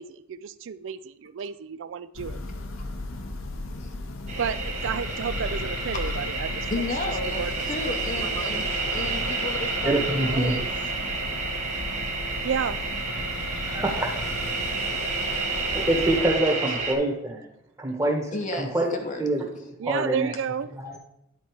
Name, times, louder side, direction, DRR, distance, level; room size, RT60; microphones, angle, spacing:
voice 1, 0.0-2.4 4.4-4.6 4.8-6.5 7.4-7.5 8.2-8.5 12.4-12.8 19.8-20.7, right 7 dB, 60° right, 15 dB, 0.4 m, -31 dB
Church bell, 2.1-16.4, left 2 dB, 70° left, 0.9 m, -36 dB
sound 1, 4.3-16.9, right 3 dB, 35° right, 1.3 m, -30 dB
voice 2, 6.7-10.7 16.7-16.8 18.3-19.2, left 2 dB, 35° left, 4 dB, 0.8 m, -33 dB
voice 3, 9.8-10.6 13.6-14.2 15.2-17.5 17.8-18.9 19.2-19.4 19.8-20.3 20.7-21.0, right 1 dB, 15° right, 0 dB, 1.2 m, -26 dB
10.0 x 4.2 x 4.6 m, 0.84 s
head